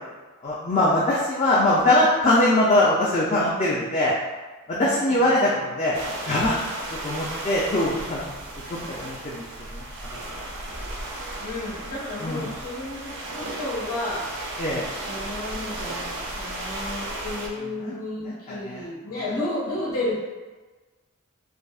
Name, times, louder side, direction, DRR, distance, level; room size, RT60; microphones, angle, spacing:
voice 1, 0.4-4.1 4.8-5.9 6.2-6.6 7.0-8.3 8.7-9.5 9.7-9.8 12.2-12.5 14.6-14.8 17.8-17.9 18.2-18.9 19.3-19.4, left 1 dB, 30° left, -6 dB, 0.4 m, -22 dB
voice 2, 4.7-5.2 11.4-14.2 14.9-20.2, left 2 dB, 85° left, -8 dB, 1.4 m, -32 dB
sound 1, 5.9-17.5, right 1 dB, 55° right, 0.5 m, -35 dB
5.1 x 2.0 x 2.4 m, 1.3 s
head